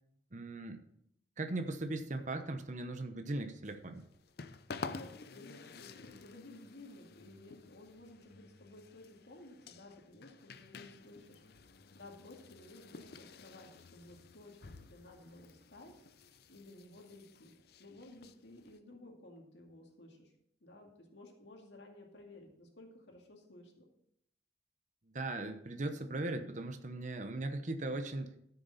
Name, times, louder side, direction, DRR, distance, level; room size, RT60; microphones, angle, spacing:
voice 1, 0.3-0.8 1.4-4.0 25.1-28.3, right 2 dB, 45° right, 7 dB, 0.9 m, -38 dB
sound 1, 3.6-18.8, left 4 dB, 60° left, 0.6 m, -51 dB
voice 2, 4.8-16.0 16.5-17.5 17.8-20.3 20.6-23.8, left 2 dB, 75° left, 1 dB, 2.2 m, -55 dB
14.0 x 6.8 x 4.1 m, 0.73 s
head